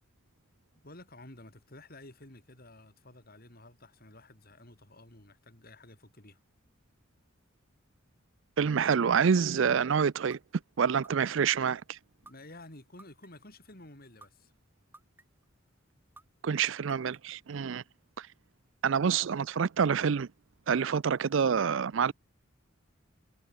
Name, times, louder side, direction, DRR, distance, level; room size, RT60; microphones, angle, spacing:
voice 1, 0.8-6.4 12.2-14.5, left 2 dB, 45° left, 5.4 m, -52 dB
voice 2, 8.6-10.4 10.8-12.0 16.4-17.8 18.2-18.3 18.8-20.3 20.7-22.1, right 6 dB, 65° right, 0.5 m, -27 dB
sound 1, 10.3-10.4 11.0-11.6 12.3-12.4 13.0-13.5 14.2-14.3 14.9-15.5 16.2-16.3 16.9-17.4, right 2 dB, 10° right, 1.5 m, -53 dB
head